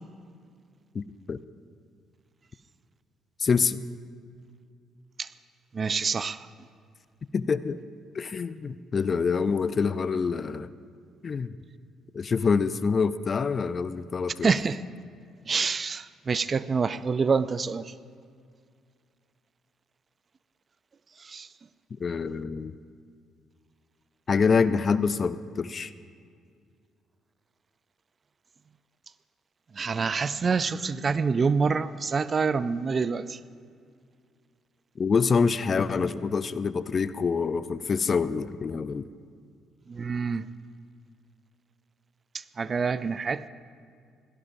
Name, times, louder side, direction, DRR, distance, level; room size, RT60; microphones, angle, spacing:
voice 1, 0.9-1.4 3.4-3.8 7.3-7.8 8.1-10.7 11.2-11.5 12.1-14.5 22.0-22.7 24.3-25.9 35.0-39.1, left 5 dB, 45° left, 15 dB, 0.5 m, -26 dB
voice 2, 5.7-6.5 14.4-14.8 15.5-17.9 21.2-21.5 29.8-33.4 39.9-40.5 42.6-43.4, right 5 dB, 40° right, 16 dB, 0.4 m, -26 dB
17.0 x 16.5 x 2.6 m, 2.2 s
supercardioid pair, 65°, 0 cm